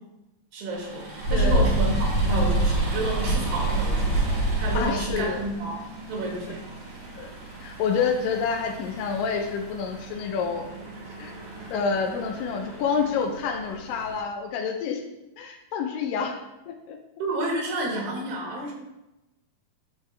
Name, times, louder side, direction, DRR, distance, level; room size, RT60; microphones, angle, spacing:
voice 1, 0.5-6.6 17.2-18.7, right 1 dB, 85° right, -1 dB, 3.4 m, -30 dB
sound 1, 0.7-14.2, right 2 dB, 50° right, 3.2 m, -29 dB
voice 2, 1.3-1.7 4.7-5.4 7.1-7.3 7.6-10.7 11.2-11.3 11.7-15.0 15.4-16.4 16.7-17.0, left 6 dB, 85° left, 3 dB, 2.4 m, -28 dB
11.5 x 4.5 x 3.4 m, 0.99 s
omnidirectional pair, 3.9 m